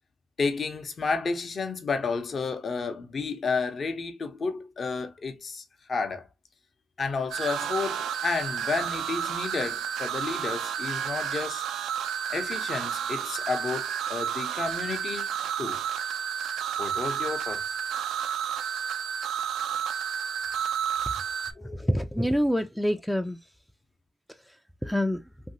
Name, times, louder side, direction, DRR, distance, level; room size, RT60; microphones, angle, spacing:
voice 1, 0.4-5.6 5.9-6.3 7.0-11.6 12.3-15.3 15.6-15.8 16.8-17.8 21.6-21.8, left 4 dB, 50° left, 0.7 m, -31 dB
sound 1, 7.3-21.5, right 8 dB, 75° right, 0.3 m, -31 dB
voice 2, 21.7-23.4 24.8-25.2, equal, ahead, 0.3 m, -26 dB
2.8 x 2.6 x 2.6 m
supercardioid pair, 50°, 0 cm